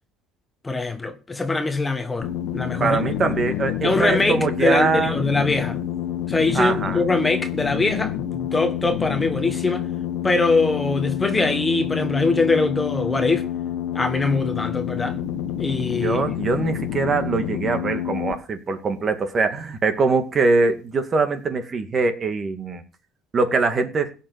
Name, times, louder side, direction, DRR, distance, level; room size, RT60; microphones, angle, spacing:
voice 1, 0.6-3.0 3.8-5.8 6.3-9.9 10.2-13.5 13.9-15.2 15.6-16.2, left 3 dB, 15° left, 1.4 m, -22 dB
sound 1, 2.2-18.3, left 10 dB, 70° left, 1.5 m, -28 dB
voice 2, 2.8-5.2 6.5-7.0 16.0-22.8 23.3-24.1, right 4 dB, 35° right, 2.2 m, -22 dB
16.0 x 6.0 x 8.0 m
supercardioid pair, 105°, 0 cm